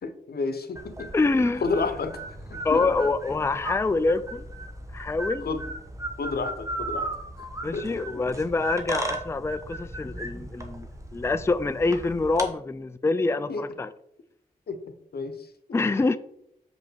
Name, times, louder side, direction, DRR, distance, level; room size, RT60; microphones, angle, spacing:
voice 1, 0.0-1.1 1.6-2.2 2.5-2.9 5.4-5.6 6.2-7.1 7.7-8.2 13.5-13.6 14.7-14.8 15.1-15.4, left 4 dB, 85° left, 0.9 m, -30 dB
sound 1, 0.7-12.5, right 2 dB, 20° right, 1.2 m, -36 dB
voice 2, 1.1-1.6 2.6-4.4 4.9-5.5 7.6-13.9 15.7-16.2, left 3 dB, 15° left, 0.4 m, -25 dB
7.0 x 5.3 x 4.5 m
wide cardioid pair, 95°, 16 cm